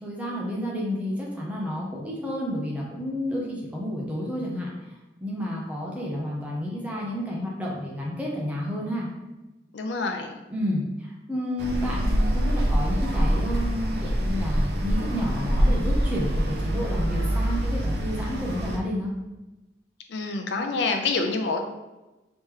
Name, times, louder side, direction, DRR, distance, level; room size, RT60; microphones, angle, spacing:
voice 1, 0.0-4.7 5.2-9.1 10.5-19.1, equal, 10° right, -4 dB, 0.7 m, -30 dB
voice 2, 9.7-10.4 20.1-21.6, left 3 dB, 80° left, 4 dB, 0.5 m, -27 dB
sound 1, 11.6-18.8, equal, 65° right, 0.5 m, -25 dB
3.2 x 3.0 x 3.6 m, 1.1 s
head